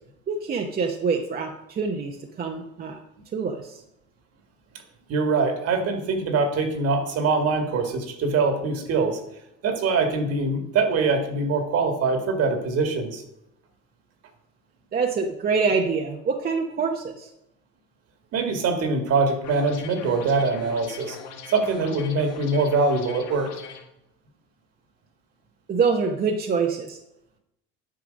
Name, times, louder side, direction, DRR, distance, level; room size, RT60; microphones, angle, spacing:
voice 1, 0.3-3.0 3.3-3.8 14.9-17.3 25.7-27.0, right 5 dB, 30° right, 2 dB, 0.8 m, -25 dB
voice 2, 5.1-9.2 9.6-13.2 18.3-21.2 21.5-23.5, right 4 dB, 55° right, 6 dB, 1.8 m, -23 dB
sound 1, 19.4-23.8, left 5 dB, 75° left, 1.5 m, -41 dB
9.5 x 5.8 x 5.2 m, 0.83 s
cardioid pair, 120°, 30 cm